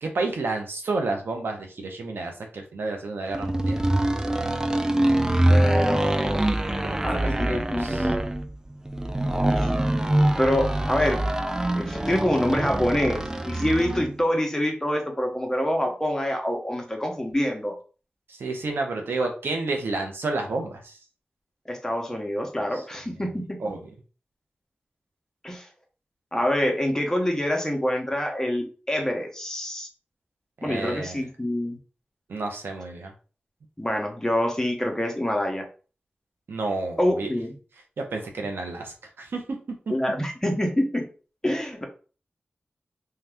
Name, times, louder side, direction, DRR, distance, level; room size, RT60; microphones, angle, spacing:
voice 1, 0.0-3.8 5.8-5.9 6.8-8.0 18.3-21.0 23.6-23.8 30.6-31.2 32.3-33.1 36.5-37.3 38.0-39.4, right 3 dB, 85° right, 3 dB, 0.7 m, -30 dB
sound 1, 3.3-14.1, right 1 dB, 15° right, 0.3 m, -24 dB
voice 2, 5.5-7.9 9.5-9.7 10.0-11.2 11.7-17.8 21.7-23.6 25.4-25.7 26.3-29.9 30.6-31.8 33.8-35.7 37.0-37.5 39.9-41.1 41.4-41.8, left 1 dB, 15° left, 2 dB, 0.8 m, -26 dB
2.7 x 2.3 x 3.4 m, 0.37 s
cardioid pair, 50°, 4 cm